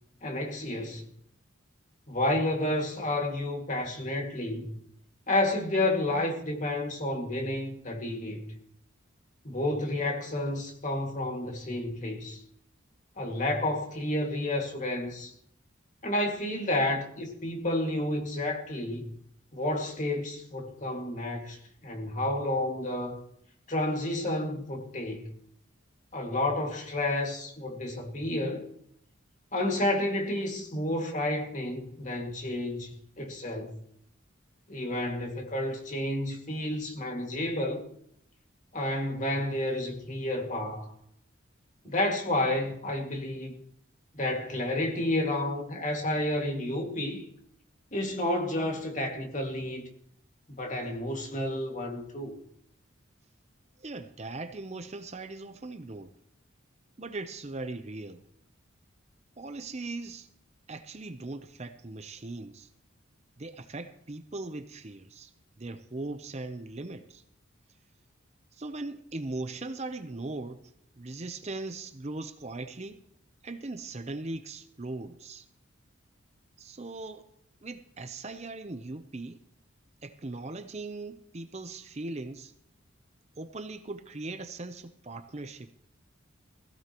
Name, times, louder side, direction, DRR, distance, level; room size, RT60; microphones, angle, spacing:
voice 1, 0.2-1.0 2.1-4.8 5.3-8.5 9.4-12.4 13.2-15.3 16.0-19.1 19.5-23.2 23.7-25.3 26.1-28.7 29.5-33.8 34.7-37.8 38.7-40.9 41.8-43.6 44.1-47.3 47.9-49.9 50.5-52.4, left 1 dB, 35° left, 2.1 m, -30 dB
voice 2, 53.8-56.1 57.0-58.2 59.4-60.3 60.7-62.7 63.4-65.3 65.6-67.2 68.5-70.7 71.0-73.0 73.4-75.5 76.6-77.3 77.6-79.4 80.0-82.5 83.4-85.7, right 2 dB, 30° right, 0.7 m, -39 dB
17.5 x 16.0 x 3.0 m
head